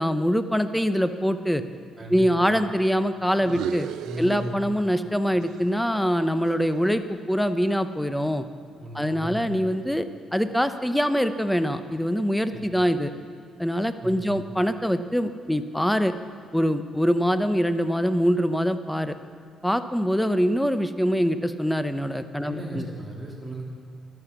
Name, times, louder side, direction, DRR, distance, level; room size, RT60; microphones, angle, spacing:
voice 1, 0.0-1.6 2.1-3.9 4.2-8.4 8.9-10.1 10.3-13.1 13.6-16.1 16.5-19.1 19.6-22.8, equal, 5° left, 10 dB, 0.7 m, -24 dB
voice 2, 2.0-2.5 4.0-4.7 8.8-9.7 12.5-12.6 14.0-14.4 22.4-23.6, right 1 dB, 15° right, -3 dB, 3.3 m, -36 dB
sound 1, 3.4-5.1 5.4-7.6, right 10 dB, 90° right, 0.5 m, -37 dB
12.0 x 11.0 x 7.1 m, 2.3 s
cardioid pair, 90°, 0 cm